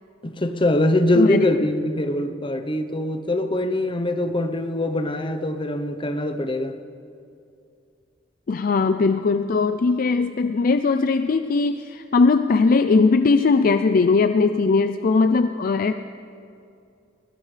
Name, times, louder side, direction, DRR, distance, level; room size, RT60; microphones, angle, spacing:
voice 1, 0.2-6.8, left 1 dB, 25° left, 0.8 m, -23 dB
voice 2, 1.1-1.4 8.5-15.9, left 4 dB, 50° left, 0.4 m, -19 dB
19.5 x 19.5 x 3.3 m
head